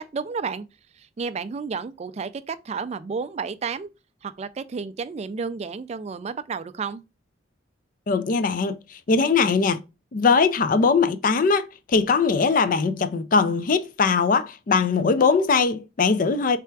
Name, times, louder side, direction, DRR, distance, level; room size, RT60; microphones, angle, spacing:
voice 1, 0.1-0.7 0.9-3.9 4.2-7.0, right 5 dB, 35° right, 0.3 m, -31 dB
voice 2, 8.1-9.8 10.1-16.6, left 4 dB, 45° left, 0.4 m, -21 dB
3.4 x 3.4 x 4.5 m
head